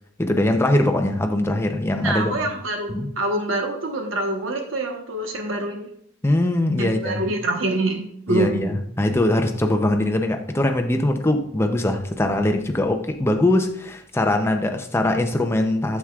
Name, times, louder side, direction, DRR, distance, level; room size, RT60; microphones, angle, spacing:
voice 1, 0.2-2.3 2.9-3.1 6.2-7.2 8.3-16.0, left 1 dB, 10° left, 4 dB, 0.6 m, -21 dB
voice 2, 2.0-5.9 6.8-8.6, right 2 dB, 75° right, 2 dB, 1.2 m, -25 dB
7.8 x 7.4 x 2.4 m, 0.69 s
head